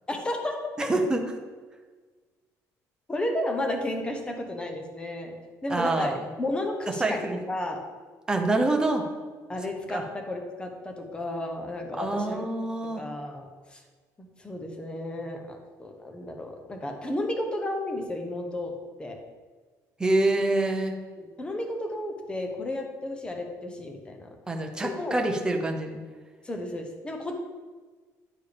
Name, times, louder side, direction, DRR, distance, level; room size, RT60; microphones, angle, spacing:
voice 1, 0.1-0.5 3.1-5.4 5.6-6.1 6.4-7.8 9.5-12.5 13.0-13.8 14.2-18.7 19.0-19.2 21.2-24.3 24.8-25.2 26.4-27.4, left 1 dB, 15° left, 3 dB, 0.9 m, -33 dB
voice 2, 0.8-1.2 5.7-6.2 6.9-7.4 8.3-9.1 9.9-10.0 12.0-13.0 20.0-20.9 24.5-26.0, right 2 dB, 10° right, 3 dB, 0.7 m, -26 dB
9.7 x 4.6 x 3.4 m, 1.4 s
cardioid pair, 150°, 7 cm